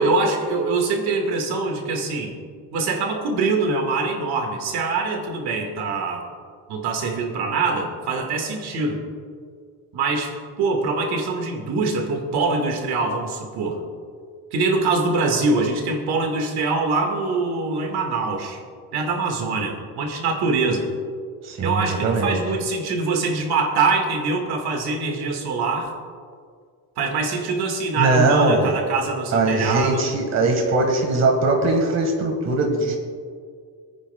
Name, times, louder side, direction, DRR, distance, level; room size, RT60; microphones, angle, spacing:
voice 1, 0.0-2.4 2.7-6.2 6.7-9.0 9.9-13.8 14.5-18.6 18.9-20.9 21.6-25.9 27.0-30.0, right 3 dB, 80° right, 3 dB, 1.8 m, -24 dB
voice 2, 21.4-22.4 27.9-28.8 29.3-32.9, right 3 dB, 45° right, 2 dB, 1.6 m, -20 dB
26.5 x 9.6 x 2.3 m, 2.1 s
cardioid pair, 170°, 38 cm